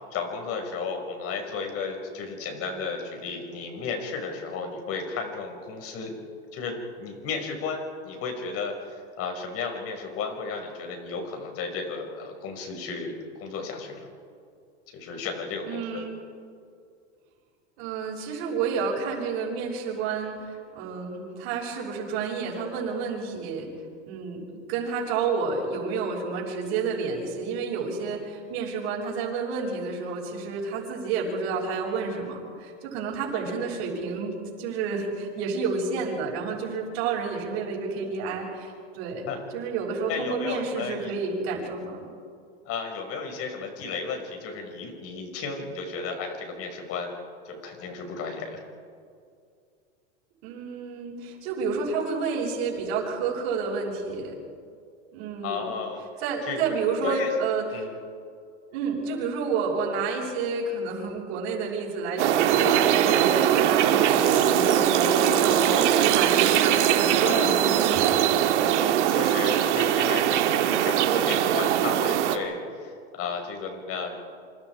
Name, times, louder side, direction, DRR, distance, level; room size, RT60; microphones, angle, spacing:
voice 1, 0.1-6.1 6.5-8.7 9.2-14.1 14.9-16.0 39.3-39.4 40.1-41.2 42.6-47.1 47.4-48.6 55.4-56.0 56.4-56.6 57.0-57.3 57.7-57.9 63.4-63.7 67.2-67.6 69.1-74.2, left 5 dB, 40° left, 4 dB, 5.9 m, -33 dB
voice 2, 15.7-16.2 17.8-23.7 24.1-39.2 39.5-42.1 50.4-54.3 55.1-55.7 56.0-57.9 58.7-68.2 68.5-68.9, right 4 dB, 60° right, -6 dB, 6.7 m, -30 dB
sound 1, 62.2-72.4, right 10 dB, 75° right, 2.1 m, -21 dB
Sink (filling or washing), 64.0-68.2 68.6-68.7, right 11 dB, 40° right, 5.1 m, -33 dB
28.0 x 26.5 x 4.9 m, 2.3 s
supercardioid pair, 130°, 35 cm